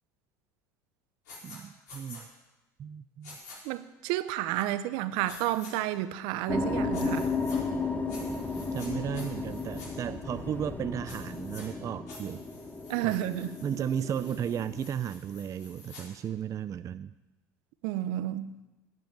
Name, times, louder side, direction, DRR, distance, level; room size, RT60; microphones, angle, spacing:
sound 1, 1.3-1.6 1.9-2.2 3.2-3.6 5.3-5.7 6.9-7.6 8.1-8.9 9.1-9.9 11.0-11.6 12.1-16.0, left 3 dB, 85° left, 4.9 m, -49 dB
voice 1, 1.4-2.3 2.8-3.4 8.7-12.4 13.0-13.2 13.6-17.1, right 9 dB, 35° right, 0.4 m, -34 dB
voice 2, 3.6-7.3 12.9-13.5 17.8-18.5, right 14 dB, 65° right, 0.8 m, -31 dB
sound 2, 6.5-14.9, left 3 dB, 20° left, 1.4 m, -34 dB
10.5 x 7.7 x 9.2 m
hypercardioid pair, 80°, 9 cm